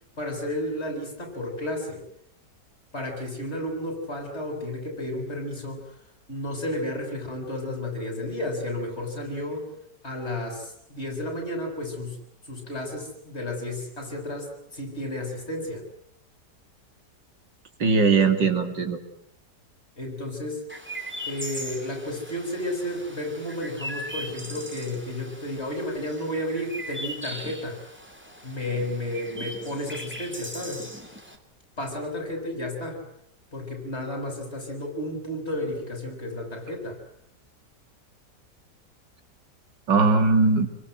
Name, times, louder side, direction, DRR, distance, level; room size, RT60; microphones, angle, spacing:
voice 1, 0.2-2.1 2.9-5.9 6.3-9.7 10.0-12.2 12.5-15.8 20.0-20.6 21.3-27.8 28.4-30.9 31.8-33.0 33.5-37.0, left 1 dB, 35° left, 3 dB, 7.4 m, -32 dB
voice 2, 17.8-19.0 39.9-40.7, right 4 dB, 85° right, 7 dB, 3.3 m, -20 dB
Chirp tweet, 20.7-31.4, equal, 5° right, 3.2 m, -39 dB
27.0 x 24.0 x 7.8 m, 0.72 s
omnidirectional pair, 1.9 m